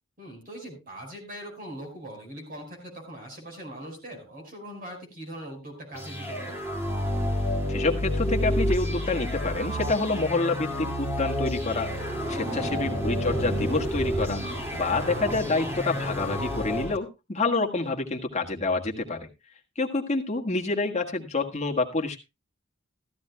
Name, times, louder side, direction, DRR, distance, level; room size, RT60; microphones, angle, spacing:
voice 1, 0.2-6.6 12.5-12.8, right 1 dB, 45° right, 3 dB, 5.1 m, -41 dB
sound 1, 5.9-17.0, equal, 10° right, 2.3 m, -29 dB
voice 2, 7.7-14.4 14.7-19.3 19.7-22.2, left 3 dB, 35° left, 2 dB, 1.6 m, -28 dB
15.0 x 13.5 x 2.3 m, 0.25 s
head